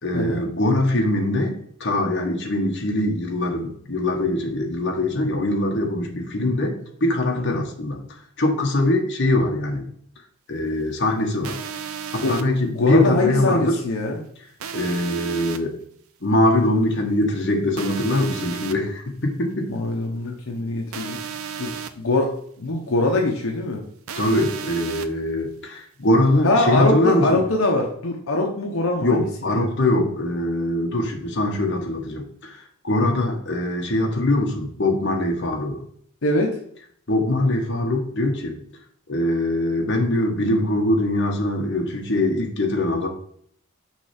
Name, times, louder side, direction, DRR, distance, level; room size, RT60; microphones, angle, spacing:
voice 1, 0.0-8.0 8.4-9.9 10.5-11.6 12.1-13.8 14.7-15.8 16.2-19.8 24.1-27.4 29.0-35.8 37.1-38.6 39.1-43.1, left 1 dB, 55° left, 1 dB, 1.3 m, -22 dB
sound 1, 11.4-12.4 14.6-15.6 17.8-18.7 20.9-21.9 24.1-25.1, right 7 dB, 75° right, 0.5 m, -33 dB
voice 2, 12.6-14.2 19.7-21.2 21.6-22.3 22.6-23.8 26.4-29.3 36.2-36.6, left 2 dB, 75° left, 1 dB, 0.9 m, -23 dB
6.0 x 3.3 x 5.8 m, 0.63 s
head